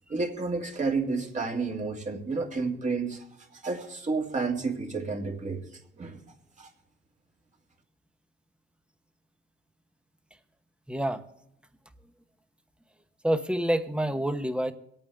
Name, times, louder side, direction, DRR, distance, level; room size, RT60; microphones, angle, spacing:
voice 1, 0.1-3.3 3.5-5.6 6.0-6.2 6.6-6.7, right 4 dB, 40° right, 2 dB, 2.3 m, -30 dB
voice 2, 10.9-11.2 13.2-14.7, right 1 dB, 5° right, 9 dB, 1.0 m, -27 dB
23.5 x 8.9 x 3.5 m, 0.79 s
cardioid pair, 90°, 20 cm